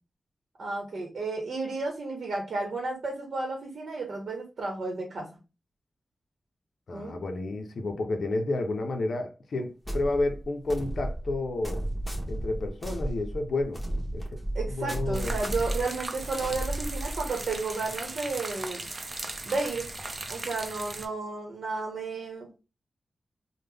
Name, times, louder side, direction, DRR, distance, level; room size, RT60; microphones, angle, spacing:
voice 1, 0.6-5.3 6.9-7.2 14.5-18.9 19.5-19.9 20.3-22.5, right 3 dB, 80° right, 0.8 m, -32 dB
voice 2, 6.9-11.8 12.3-13.8 14.1-14.3 14.7-15.4, left 2 dB, 80° left, 0.4 m, -30 dB
sound 1, 9.8-17.5, right 1 dB, 10° left, 1.0 m, -33 dB
sound 2, 15.1-21.1, right 2 dB, 40° right, 0.5 m, -38 dB
3.4 x 2.0 x 3.3 m
cardioid pair, 60°, 0 cm